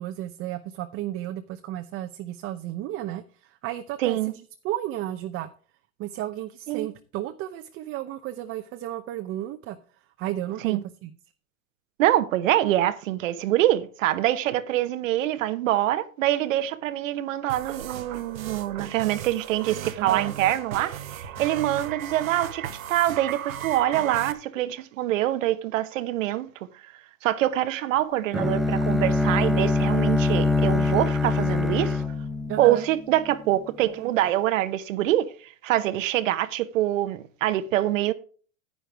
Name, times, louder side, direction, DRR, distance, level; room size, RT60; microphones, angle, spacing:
voice 1, 0.0-5.5 6.0-9.8 10.2-11.1 20.0-20.3 32.5-32.8, right 13 dB, 30° right, 0.8 m, -33 dB
voice 2, 4.0-4.3 6.7-6.9 10.6-10.8 12.0-26.9 27.2-32.0 32.6-38.1, right 13 dB, 70° right, 1.1 m, -25 dB
sound 1, 17.5-24.3, right 10 dB, 90° right, 1.4 m, -36 dB
Bowed string instrument, 28.3-33.3, left 3 dB, ahead, 0.5 m, -24 dB
10.5 x 9.7 x 3.4 m
supercardioid pair, 135°, 40 cm